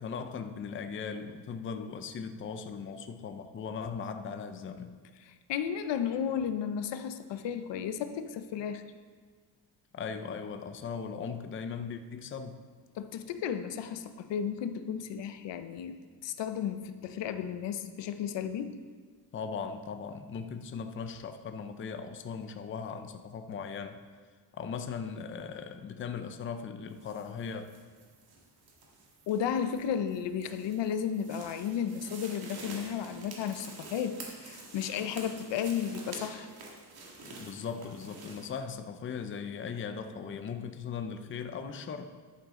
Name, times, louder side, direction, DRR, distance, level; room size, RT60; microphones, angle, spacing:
voice 1, 0.0-5.0 9.9-12.6 19.3-24.0 24.5-27.7 37.4-42.1, left 6 dB, 30° left, 8 dB, 0.5 m, -38 dB
voice 2, 5.5-8.8 12.9-18.8 29.3-36.5, left 8 dB, 80° left, 10 dB, 0.8 m, -33 dB
sound 1, 26.9-38.5, right 3 dB, 60° right, 2.1 m, -48 dB
11.0 x 9.1 x 3.7 m, 1.5 s
cardioid pair, 150°, 43 cm